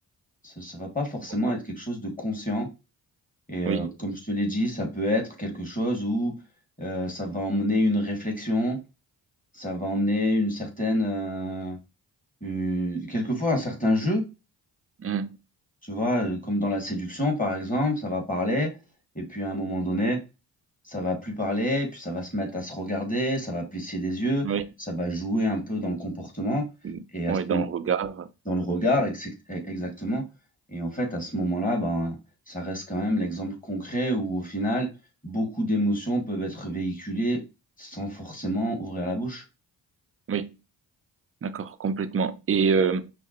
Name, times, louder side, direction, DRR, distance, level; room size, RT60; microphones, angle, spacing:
voice 1, 0.4-2.7 3.5-6.3 6.8-8.8 9.5-11.8 12.4-14.2 15.8-18.7 19.2-20.2 20.9-24.5 24.9-26.6 27.1-27.6 28.5-30.2 30.7-32.2 32.5-34.9 35.2-37.4 37.8-39.4, equal, 15° left, 2.2 m, -27 dB
voice 2, 15.0-15.4 24.4-24.6 26.8-27.0 27.3-28.3 40.3-40.5 41.4-43.1, right 6 dB, 30° right, 0.5 m, -26 dB
5.6 x 2.2 x 3.0 m
supercardioid pair, 40°, 47 cm